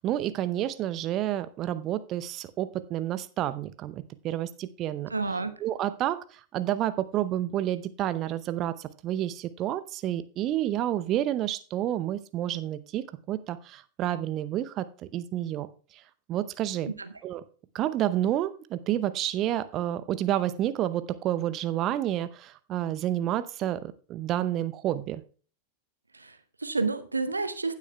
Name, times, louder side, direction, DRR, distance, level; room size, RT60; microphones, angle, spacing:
voice 1, 0.0-5.1 5.6-6.2 6.5-14.9 15.1-15.7 16.3-16.9 17.2-17.4 17.7-25.2, right 12 dB, 35° right, 13 dB, 0.6 m, -29 dB
voice 2, 5.1-5.5 17.0-17.1 26.1-27.8, right 3 dB, 80° right, 10 dB, 0.8 m, -30 dB
16.0 x 8.3 x 2.2 m, 0.38 s
figure-of-eight pair, 90°, 0 cm